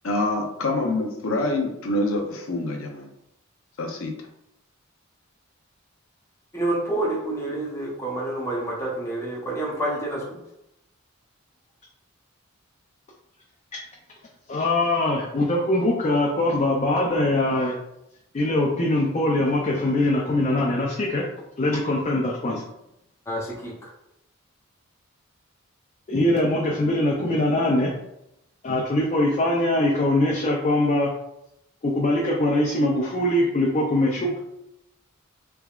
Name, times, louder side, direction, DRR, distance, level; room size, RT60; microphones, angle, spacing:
voice 1, 0.0-3.1 3.8-4.2, left 2 dB, 65° left, 2 dB, 0.7 m, -26 dB
voice 2, 6.5-10.4 23.3-23.7, right 1 dB, 15° left, -4 dB, 0.8 m, -28 dB
voice 3, 14.5-17.8 18.3-21.2 21.6-22.6 26.1-27.9 28.6-31.1 31.8-34.4, left 1 dB, 30° left, -2 dB, 0.4 m, -22 dB
3.5 x 3.4 x 2.4 m, 0.83 s
head